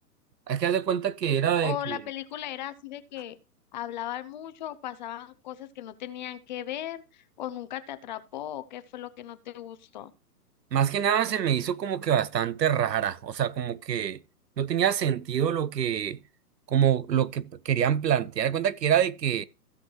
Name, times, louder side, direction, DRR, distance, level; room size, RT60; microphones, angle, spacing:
voice 1, 0.5-2.0 10.7-14.2 14.6-16.2 16.7-19.5, right 9 dB, 85° right, 0.8 m, -25 dB
voice 2, 1.6-3.4 3.7-10.1, left 12 dB, 30° left, 0.6 m, -37 dB
15.5 x 5.9 x 3.0 m
hypercardioid pair, 135°, 48 cm